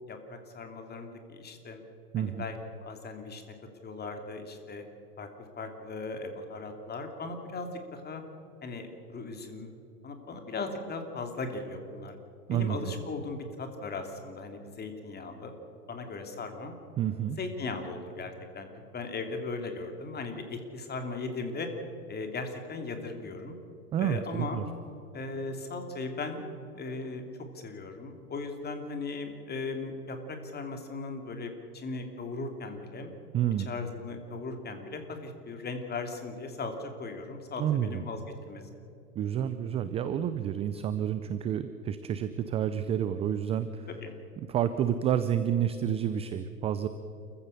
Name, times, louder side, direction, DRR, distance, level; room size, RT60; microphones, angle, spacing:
voice 1, 0.1-1.8 2.1-2.5 2.8-3.4 3.8-4.8 5.2-5.3 5.6-8.2 8.6-9.7 10.0-12.1 12.5-15.5 15.9-16.7 17.4-18.7 18.9-21.7 22.1-23.6 24.0-24.6 25.1-26.5 26.7-27.2 27.5-33.1 33.7-38.6 43.9-44.1, left 3 dB, 20° left, 5 dB, 2.8 m, -38 dB
voice 2, 2.1-2.5 12.5-12.8 17.0-17.4 23.9-24.7 33.3-33.7 37.6-38.0 39.2-43.9 44.4-46.9, right 9 dB, 15° right, 11 dB, 0.4 m, -29 dB
28.0 x 15.0 x 6.7 m, 2.7 s
hypercardioid pair, 110°, 47 cm